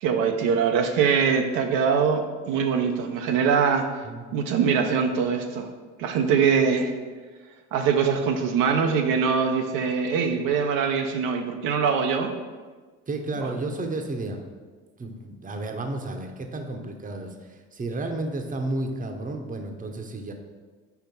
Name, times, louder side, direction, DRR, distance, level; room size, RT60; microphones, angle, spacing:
voice 1, 0.0-3.8 4.3-5.7 6.0-6.9 7.7-12.3 13.4-13.5, right 6 dB, 70° right, 4 dB, 0.7 m, -23 dB
voice 2, 13.1-14.4 15.0-20.3, right 2 dB, 25° right, 4 dB, 0.8 m, -32 dB
4.7 x 4.3 x 5.3 m, 1.4 s
supercardioid pair, 70°, 34 cm